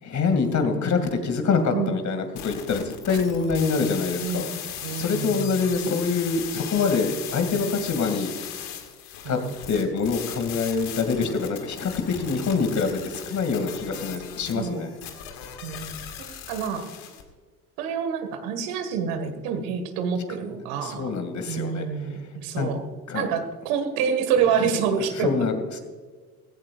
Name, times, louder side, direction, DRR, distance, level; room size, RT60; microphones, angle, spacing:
voice 1, 0.0-4.5 4.9-8.3 9.3-9.4 9.7-14.9 20.8-21.8 22.6-22.7 23.1-23.3 25.2-25.7, left 4 dB, 40° left, 6 dB, 2.6 m, -25 dB
sound 1, 2.4-17.2, left 9 dB, 60° left, 2.1 m, -37 dB
voice 2, 4.2-4.5 4.8-5.6 9.2-9.5 14.5-14.9 15.6-16.9 17.8-21.1 21.5-22.8 23.1-25.4, right 7 dB, 65° right, 7 dB, 2.0 m, -27 dB
16.5 x 16.5 x 2.5 m, 1.5 s
hypercardioid pair, 65°, 45 cm